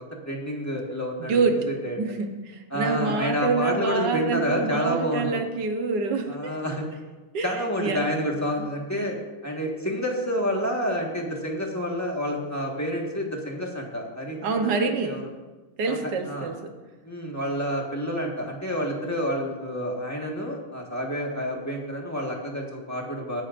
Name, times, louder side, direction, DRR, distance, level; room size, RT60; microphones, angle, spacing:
voice 1, 0.3-1.4 1.8-2.0 2.7-5.3 6.3-6.8 7.4-9.2 9.4-15.2 15.9-16.0 16.3-16.5 17.0-23.4, equal, 10° left, -1 dB, 1.3 m, -29 dB
voice 2, 1.2-1.7 2.0-6.6 7.3-8.3 8.6-8.7 9.0-9.2 14.4-15.2 15.8-16.7, right 4 dB, 60° right, 5 dB, 1.5 m, -27 dB
18.5 x 9.9 x 2.6 m, 1.2 s
omnidirectional pair, 2.3 m